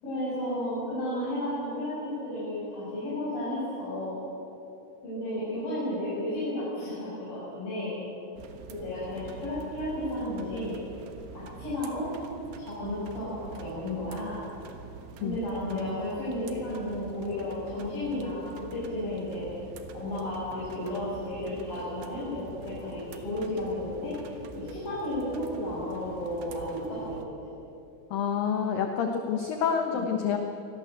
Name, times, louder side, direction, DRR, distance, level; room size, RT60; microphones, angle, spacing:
voice 1, 0.0-4.2 5.0-8.0 8.7-10.8 11.3-12.1 12.6-14.4 15.2-19.5 19.9-24.1 24.6-27.2 29.9-30.1, left 1 dB, 45° left, -9 dB, 7.9 m, -33 dB
sound 1, 8.4-27.3, right 5 dB, 65° right, 2.7 m, -46 dB
voice 2, 28.1-30.4, left 7 dB, 75° left, 4 dB, 2.1 m, -28 dB
25.0 x 18.5 x 7.9 m, 2.9 s
omnidirectional pair, 5.8 m